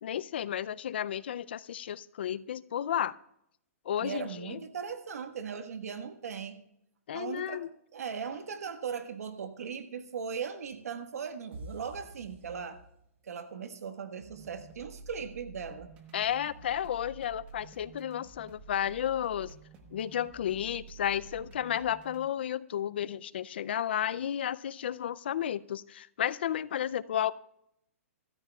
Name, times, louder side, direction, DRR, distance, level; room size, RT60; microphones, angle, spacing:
voice 1, 0.0-3.2 3.9-4.6 7.1-7.7 16.1-19.5 19.9-27.3, left 10 dB, 45° left, 18 dB, 0.4 m, -32 dB
voice 2, 4.0-6.6 7.1-7.7 7.9-12.8 13.2-15.9, right 6 dB, 80° right, 8 dB, 1.4 m, -38 dB
sound 1, 11.5-13.3, right 1 dB, 50° right, 1.5 m, -47 dB
sound 2, 14.2-22.3, right 4 dB, 15° right, 1.0 m, -51 dB
24.5 x 13.5 x 2.3 m, 0.78 s
hypercardioid pair, 175°, 8 cm